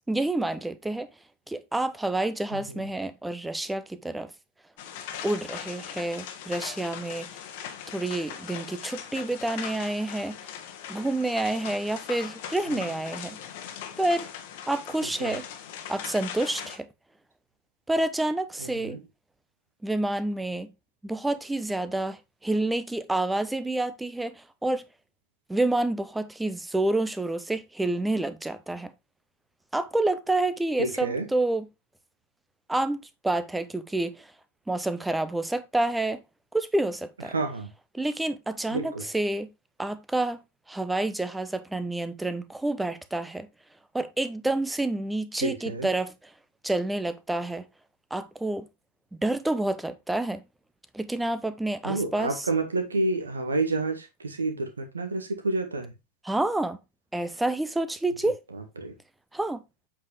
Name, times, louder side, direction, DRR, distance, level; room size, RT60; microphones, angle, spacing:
voice 1, 0.1-1.1 1.5-4.3 5.2-7.3 7.9-10.4 10.9-13.4 14.0-14.3 14.7-15.4 15.9-16.9 17.9-19.0 19.8-20.7 21.0-24.8 25.5-28.9 29.7-31.6 32.7-34.3 34.7-36.2 36.5-37.3 37.9-39.5 39.8-40.4 40.7-43.5 43.9-46.1 46.6-47.7 48.1-48.7 49.2-50.4 50.9-52.3 56.3-56.8 57.1-58.4 59.3-59.6, right 2 dB, 5° right, 0.8 m, -28 dB
voice 2, 2.5-2.9 12.7-12.9 15.0-15.4 18.6-19.0 30.8-31.3 37.2-37.7 38.7-39.1 45.3-45.9 51.8-55.9 58.2-58.9, right 2 dB, 75° right, 1.6 m, -30 dB
sound 1, 4.8-16.8, left 9 dB, 50° left, 1.3 m, -40 dB
8.2 x 5.3 x 3.3 m
figure-of-eight pair, 90°, 0 cm